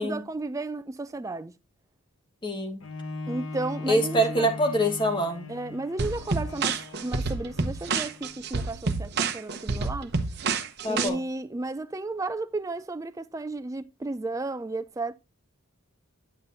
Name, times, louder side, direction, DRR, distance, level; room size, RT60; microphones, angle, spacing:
voice 1, 0.0-1.5 3.3-4.5 5.5-6.7 7.0-10.1 10.8-15.1, right 2 dB, 15° right, 0.3 m, -33 dB
voice 2, 2.4-2.8 3.9-5.5 10.8-11.2, equal, 20° left, 1.3 m, -25 dB
Bowed string instrument, 2.8-8.4 9.1-9.2, left 3 dB, 65° left, 1.0 m, -39 dB
sound 1, 6.0-11.1, right 4 dB, 45° right, 0.8 m, -28 dB
9.4 x 7.2 x 2.6 m
head